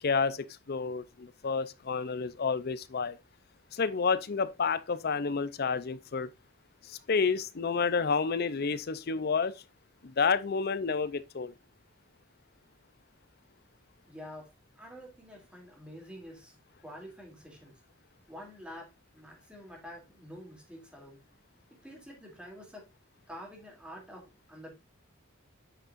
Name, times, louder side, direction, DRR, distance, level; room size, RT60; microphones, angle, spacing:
voice 1, 0.0-3.2 3.7-6.3 6.8-9.5 10.0-11.5, left 5 dB, 50° left, 0.5 m, -30 dB
voice 2, 14.1-17.8 18.3-21.2 21.7-22.9 23.3-24.7, equal, 5° right, 2.7 m, -48 dB
8.3 x 6.2 x 2.5 m
head